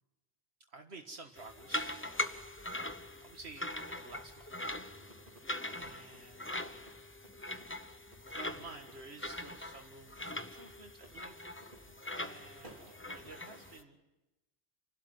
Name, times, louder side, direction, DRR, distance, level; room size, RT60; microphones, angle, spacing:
voice 1, 0.7-4.5 5.1-5.4 5.7-6.8 8.2-11.9 12.2-14.0, right 3 dB, 70° right, 3 dB, 1.9 m, -53 dB
sound 1, 1.4-13.8, left 1 dB, 10° left, 0.8 m, -42 dB
sound 2, 4.8-13.8, right 1 dB, 50° right, 3.3 m, -61 dB
29.5 x 12.5 x 9.4 m, 1.0 s
omnidirectional pair, 1.1 m